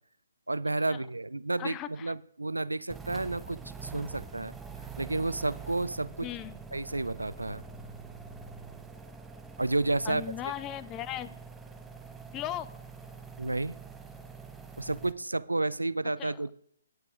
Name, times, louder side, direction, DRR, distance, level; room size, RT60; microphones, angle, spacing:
voice 1, 0.5-4.5 5.0-6.3 6.7-7.6 9.6-10.2 13.4-13.8 14.8-16.5, right 2 dB, 85° right, 18 dB, 0.5 m, -31 dB
voice 2, 1.6-2.1 6.2-6.6 10.1-11.3 12.3-12.7 16.2-16.4, left 12 dB, 20° left, 16 dB, 0.5 m, -37 dB
sound 1, 2.9-15.1, right 5 dB, 5° right, 0.9 m, -45 dB
18.5 x 6.9 x 3.6 m, 0.68 s
figure-of-eight pair, 135°, 0 cm